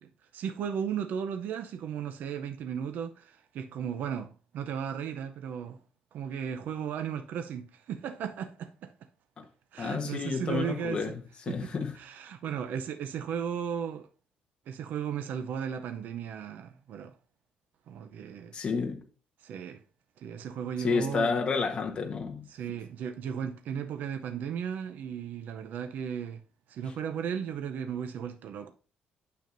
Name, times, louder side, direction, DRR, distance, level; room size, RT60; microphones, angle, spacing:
voice 1, 0.0-5.8 6.1-8.9 9.7-11.1 11.5-11.7 11.9-14.1 14.7-17.1 17.9-18.5 19.4-19.8 20.2-21.3 22.5-26.4 26.7-28.7, right 8 dB, 60° right, 0.6 m, -35 dB
voice 2, 9.8-12.0 18.5-19.0 20.8-22.5, left 5 dB, 30° left, 1.1 m, -30 dB
9.1 x 7.0 x 2.6 m
cardioid pair, 170°, 3 cm